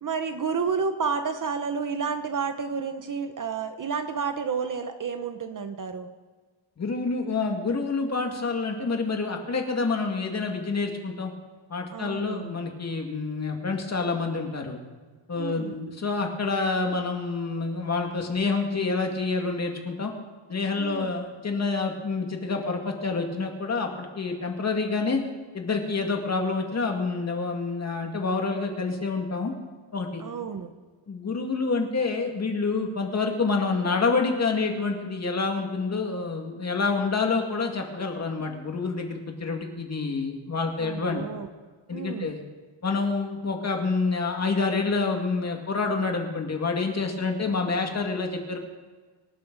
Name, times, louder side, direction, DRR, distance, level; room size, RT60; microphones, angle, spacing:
voice 1, 0.0-6.1 11.9-12.5 15.3-15.8 20.8-21.1 30.2-30.7 40.8-41.5 41.9-42.3, right 5 dB, 40° right, 8 dB, 0.9 m, -30 dB
voice 2, 6.8-11.3 11.7-14.8 15.3-20.1 20.5-25.2 25.5-29.5 29.9-30.2 31.1-41.2 41.9-42.4 42.8-48.6, left 4 dB, 30° left, 2 dB, 2.2 m, -27 dB
25.5 x 12.0 x 4.0 m, 1.4 s
wide cardioid pair, 170°, 49 cm